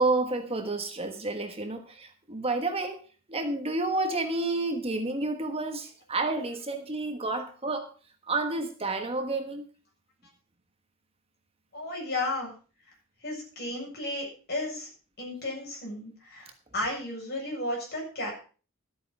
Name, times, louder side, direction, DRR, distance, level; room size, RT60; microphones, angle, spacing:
voice 1, 0.0-3.0 3.3-7.9 8.3-9.7, right 2 dB, 30° right, 6 dB, 1.3 m, -30 dB
voice 2, 11.7-12.5 13.2-14.9 15.2-18.3, left 1 dB, 50° left, -1 dB, 7.5 m, -33 dB
13.0 x 8.6 x 5.4 m, 0.38 s
head